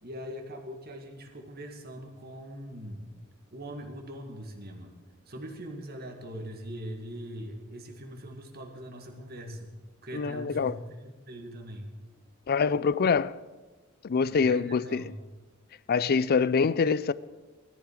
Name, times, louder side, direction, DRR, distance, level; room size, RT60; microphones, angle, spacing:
voice 1, 0.0-3.1 3.5-4.9 5.3-9.7 10.0-11.9 14.3-15.2, equal, 50° right, 2.1 m, -41 dB
voice 2, 10.1-10.7 12.5-13.3 14.0-15.2 15.9-17.1, left 5 dB, 50° left, 0.4 m, -25 dB
18.0 x 13.5 x 4.8 m
head